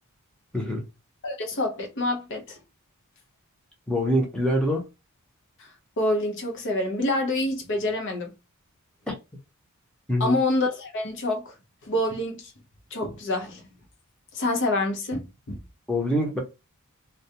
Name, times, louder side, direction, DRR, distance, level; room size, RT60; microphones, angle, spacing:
voice 1, 0.5-0.8 3.9-4.8 9.1-9.2 10.1-10.4 15.9-16.4, equal, 5° left, 0.7 m, -24 dB
voice 2, 1.2-2.6 5.6-8.3 10.2-11.5 11.8-12.5 12.9-13.6 14.3-15.6, left 1 dB, 60° left, 0.8 m, -27 dB
2.3 x 2.3 x 2.8 m
head